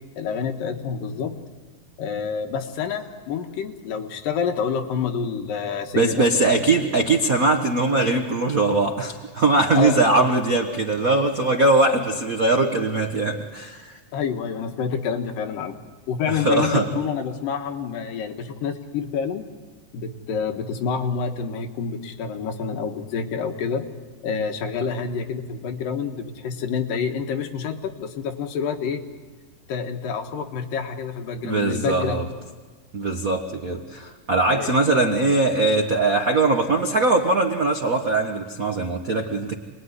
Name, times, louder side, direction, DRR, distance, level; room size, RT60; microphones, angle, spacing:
voice 1, 0.2-1.4 2.0-6.3 9.7-10.3 14.1-15.8 16.1-19.4 19.9-23.8 24.2-29.0 29.7-32.2 34.5-34.7, left 6 dB, 85° left, 5 dB, 3.2 m, -28 dB
voice 2, 5.9-14.0 16.3-16.9 31.4-32.2 32.9-39.6, right 2 dB, 85° right, 4 dB, 0.7 m, -21 dB
27.0 x 20.5 x 9.7 m, 1.4 s
omnidirectional pair, 3.8 m